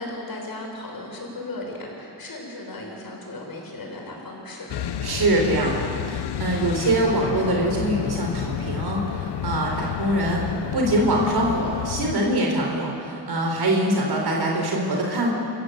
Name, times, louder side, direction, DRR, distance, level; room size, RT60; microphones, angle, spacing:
voice 1, 0.0-4.7, left 2 dB, 60° left, 0 dB, 6.1 m, -36 dB
sound 1, 4.7-12.2, left 10 dB, 80° left, 0.9 m, -30 dB
voice 2, 5.0-15.3, right 1 dB, 65° right, 0 dB, 3.8 m, -23 dB
27.5 x 14.5 x 8.3 m, 2.5 s
wide cardioid pair, 100°, 40 cm